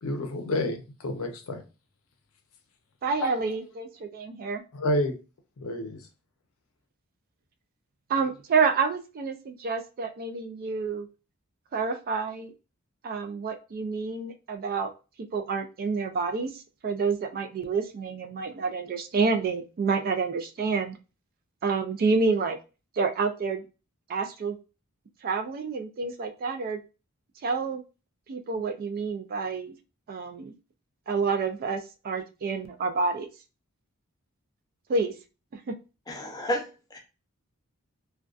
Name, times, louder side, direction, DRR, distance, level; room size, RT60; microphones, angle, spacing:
voice 1, 0.0-1.6 3.2-3.3 4.7-5.2 5.6-6.0, left 1 dB, 75° left, 0.5 m, -29 dB
voice 2, 3.0-4.6 8.1-11.1 11.7-12.5 13.0-14.9 15.3-16.5 16.8-21.0 21.6-22.6 23.0-23.6 24.1-24.6 25.2-26.8 27.4-27.8 28.3-29.8 30.1-30.5 31.1-33.3 34.9-35.1, right 4 dB, 45° right, 0.3 m, -28 dB
voice 3, 36.1-37.0, equal, 20° left, 0.5 m, -32 dB
2.4 x 2.2 x 2.3 m
head